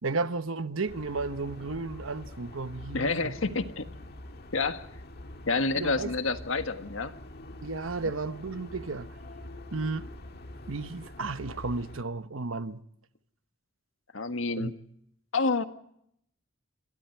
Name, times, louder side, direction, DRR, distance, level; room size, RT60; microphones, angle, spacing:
voice 1, 0.0-3.4 5.7-6.1 7.6-9.1 9.7-10.1 10.7-12.8 14.6-14.7, right 3 dB, 90° right, 1.0 m, -33 dB
sound 1, 0.9-12.0, left 1 dB, 50° left, 1.8 m, -45 dB
voice 2, 2.9-3.9 4.5-4.9 5.5-7.2 14.1-14.7 15.3-15.6, left 3 dB, 85° left, 1.7 m, -28 dB
28.0 x 26.0 x 4.6 m
head